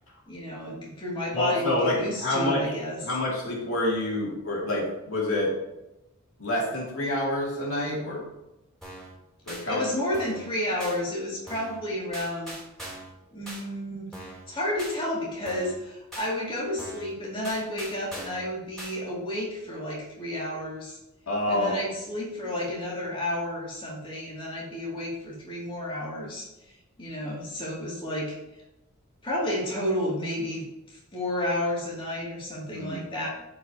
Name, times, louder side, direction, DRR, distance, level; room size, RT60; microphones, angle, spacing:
voice 1, 0.3-3.0 9.7-12.5 13.3-21.0 21.5-26.4 27.0-28.4 29.2-30.6 30.9-33.3, left 1 dB, 25° left, -6 dB, 2.5 m, -31 dB
voice 2, 1.3-2.7 3.0-5.5 6.4-8.2 9.5-9.8 21.3-21.8 32.7-33.0, left 1 dB, 75° left, -4 dB, 2.5 m, -27 dB
sound 1, 8.8-9.1 9.5-9.6 10.1-10.5 10.8-11.0 11.5-11.8 12.1-13.1 13.4-13.6 14.1-14.4 14.8-14.9 15.4-15.8 16.1-16.3 16.8-17.1 17.4-18.4 18.8-18.9, right 1 dB, ahead, 3.2 m, -41 dB
13.5 x 5.0 x 2.8 m, 0.94 s
head